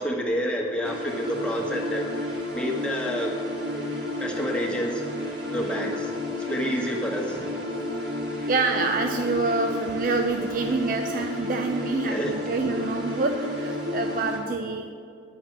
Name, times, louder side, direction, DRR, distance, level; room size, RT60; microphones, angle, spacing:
voice 1, 0.0-2.2 2.5-3.4 3.7-3.9 4.2-5.1 5.5-7.5 12.0-12.4, equal, 5° left, -2 dB, 1.4 m, -29 dB
sound 1, 0.8-14.4, left 1 dB, 80° right, 2.9 m, -32 dB
voice 2, 8.5-14.9, right 3 dB, 50° right, 4 dB, 0.6 m, -27 dB
10.0 x 5.8 x 8.6 m, 2.4 s
head